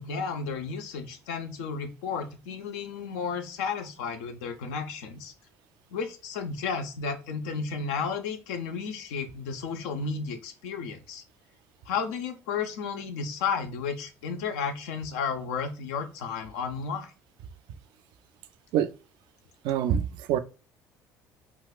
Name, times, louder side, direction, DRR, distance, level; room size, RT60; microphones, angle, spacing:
voice 1, 0.0-5.3 5.9-11.2 11.9-17.1, left 5 dB, 75° left, 0.6 m, -33 dB
voice 2, 19.6-20.4, right 9 dB, 65° right, 0.4 m, -25 dB
3.9 x 2.3 x 2.2 m
hypercardioid pair, 60°, 9 cm